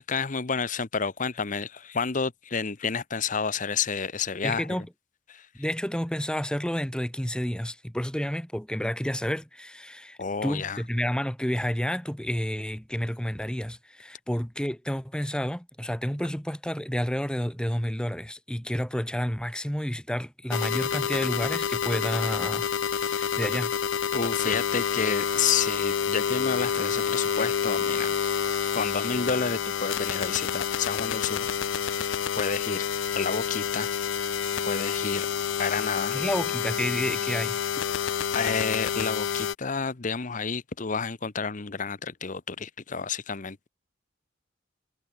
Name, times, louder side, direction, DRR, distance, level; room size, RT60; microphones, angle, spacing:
voice 1, 0.0-4.7 5.3-5.5 10.2-10.8 24.1-28.1 28.7-31.5 32.0-32.8 33.2-33.9 34.6-35.3 35.6-36.2 38.3-43.7, left 5 dB, 40° left, 0.9 m, -30 dB
voice 2, 4.4-4.9 5.5-22.7 23.0-23.7 36.1-37.6, equal, 5° left, 1.7 m, -30 dB
sound 1, 20.5-39.6, left 7 dB, 90° left, 0.5 m, -28 dB
head